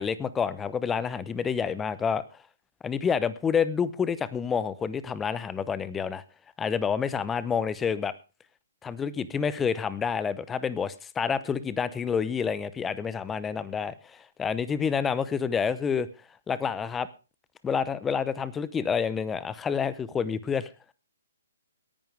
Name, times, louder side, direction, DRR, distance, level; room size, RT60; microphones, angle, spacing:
voice 1, 0.0-2.2 2.8-6.2 6.6-8.1 8.8-16.1 16.5-17.1 17.6-20.9, left 6 dB, 10° left, 16 dB, 0.8 m, -28 dB
18.0 x 10.5 x 3.5 m, 0.32 s
hypercardioid pair, 135°, 0 cm